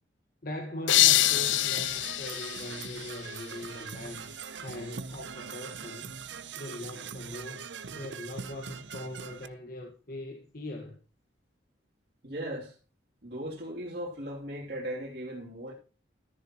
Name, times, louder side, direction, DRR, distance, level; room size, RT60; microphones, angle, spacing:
voice 1, 0.4-6.1 6.6-11.0, left 1 dB, 50° left, 1.5 m, -41 dB
sound 1, 0.9-3.7, left 15 dB, 85° left, 0.5 m, -26 dB
Percussion / Brass instrument, 0.9-9.5, right 6 dB, 75° right, 0.7 m, -42 dB
voice 2, 12.2-12.7 13.2-15.7, equal, 55° right, 2.9 m, -37 dB
13.5 x 10.5 x 3.0 m
head